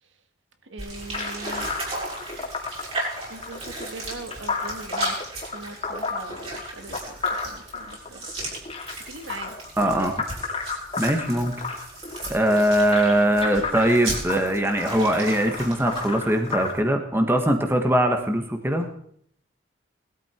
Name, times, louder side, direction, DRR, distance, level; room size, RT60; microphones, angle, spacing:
voice 1, 0.7-1.7 3.3-7.2 7.4-8.3 9.1-9.5 12.1-12.3, right 2 dB, 75° right, 7 dB, 1.8 m, -41 dB
sound 1, 0.8-16.8, right 2 dB, 30° right, 6.1 m, -36 dB
sound 2, 1.1-16.7, left 4 dB, 30° left, 2.7 m, -32 dB
voice 2, 9.8-10.2 11.0-11.5 12.3-18.9, right 1 dB, 10° right, 5 dB, 1.6 m, -21 dB
20.0 x 13.0 x 4.6 m, 0.64 s
head